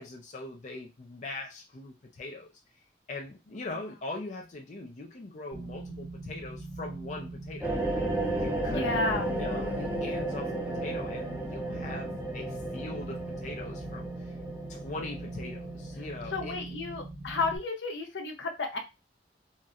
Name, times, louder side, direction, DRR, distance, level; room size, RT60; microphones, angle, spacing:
voice 1, 0.0-2.5 3.1-7.7 8.4-14.3 14.7-16.8, left 2 dB, 40° left, 1 dB, 0.4 m, -41 dB
sound 1, 5.5-17.6, right 2 dB, 45° right, 0.9 m, -42 dB
sound 2, 7.6-16.5, right 1 dB, 10° right, 0.7 m, -34 dB
voice 2, 8.7-9.3 16.3-18.8, left 3 dB, 80° left, 3 dB, 0.7 m, -32 dB
4.1 x 2.1 x 2.4 m, 0.25 s
head